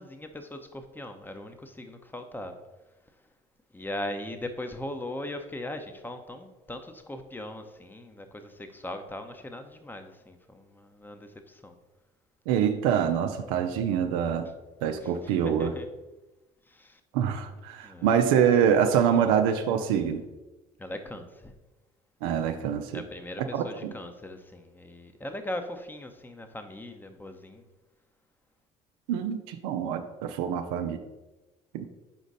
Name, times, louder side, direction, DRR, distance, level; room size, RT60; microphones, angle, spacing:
voice 1, 0.0-2.6 3.7-11.8 15.0-15.9 16.7-17.0 17.8-18.1 20.8-21.5 22.9-27.6, left 1 dB, 10° left, 7 dB, 0.9 m, -39 dB
voice 2, 12.5-14.5 14.8-15.7 17.1-20.2 22.2-23.0 23.5-23.9 29.1-31.0 31.7-31.9, right 8 dB, 80° right, 6 dB, 0.6 m, -25 dB
6.2 x 5.0 x 4.1 m, 1.1 s
hypercardioid pair, 60°, 18 cm